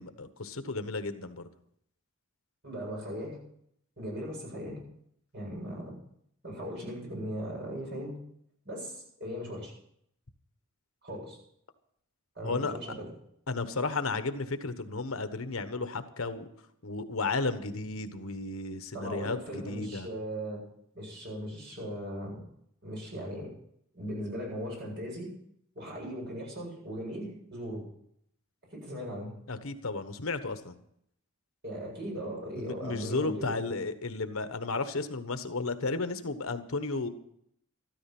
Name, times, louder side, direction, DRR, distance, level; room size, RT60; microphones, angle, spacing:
voice 1, 0.0-1.5 12.4-12.7 13.5-16.5 16.8-20.1 29.5-30.8 32.6-37.1, left 3 dB, 80° left, 10 dB, 1.2 m, -33 dB
voice 2, 2.6-3.4 4.0-4.8 5.3-5.9 6.4-8.2 8.6-9.7 11.0-11.4 12.3-13.1 18.9-20.6 20.9-22.4 22.8-23.5 23.9-25.3 25.7-27.8 28.7-29.3 31.6-33.5, equal, 55° right, -2 dB, 8.0 m, -38 dB
13.5 x 13.5 x 6.0 m, 0.71 s
head